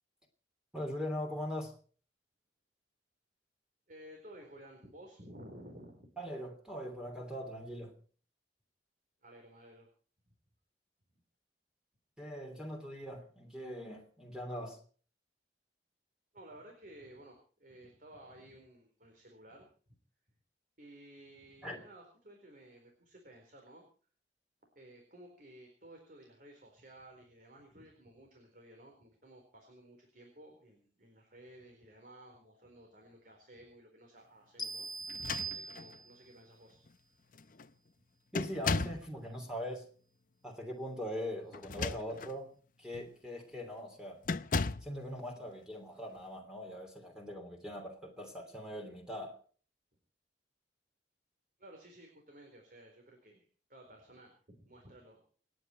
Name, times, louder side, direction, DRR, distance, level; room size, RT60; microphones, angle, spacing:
voice 1, 0.7-1.7 6.2-7.9 12.2-14.8 21.6-21.8 38.3-39.9 40.4-44.2 44.8-49.4, equal, 5° right, 3.0 m, -41 dB
voice 2, 3.9-6.1 9.2-9.9 16.3-19.7 20.8-23.8 24.7-34.9 35.2-36.8 51.6-55.2, right 1 dB, 50° right, 4.3 m, -55 dB
sound 1, 34.6-36.3, right 3 dB, 25° left, 1.2 m, -41 dB
sound 2, 35.1-36.0 36.9-37.0 37.3-37.7 38.3-39.1 41.5-42.4 42.9-43.1 44.2-45.0, left 4 dB, 50° left, 0.6 m, -36 dB
28.5 x 9.8 x 4.6 m
head